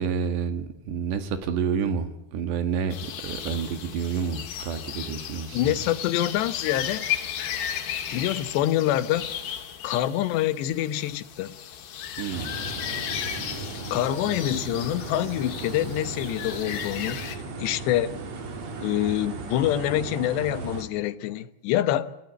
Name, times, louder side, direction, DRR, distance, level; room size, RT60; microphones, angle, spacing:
voice 1, 0.0-3.0 3.2-5.9 12.2-12.5, right 6 dB, 85° right, 4.1 m, -29 dB
sound 1, 2.9-17.4, left 9 dB, 65° left, 3.6 m, -35 dB
voice 2, 5.5-7.1 8.1-9.3 9.8-11.6 13.9-18.2 18.8-22.1, left 13 dB, 85° left, 3.3 m, -26 dB
sound 2, 12.3-20.8, right 3 dB, 45° right, 3.2 m, -36 dB
30.0 x 15.5 x 9.4 m
omnidirectional pair, 4.8 m